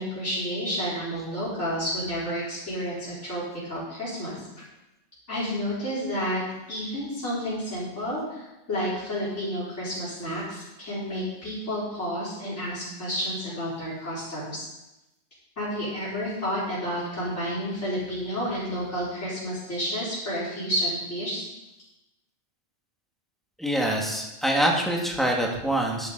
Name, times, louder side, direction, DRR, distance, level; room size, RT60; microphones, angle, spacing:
voice 1, 0.0-3.4 3.7-4.5 5.3-6.4 6.7-14.7 15.6-21.4, equal, 85° left, -9 dB, 4.5 m, -30 dB
voice 2, 23.6-26.1, right 1 dB, ahead, -1 dB, 1.9 m, -25 dB
11.0 x 10.5 x 4.0 m, 0.95 s
omnidirectional pair, 1.2 m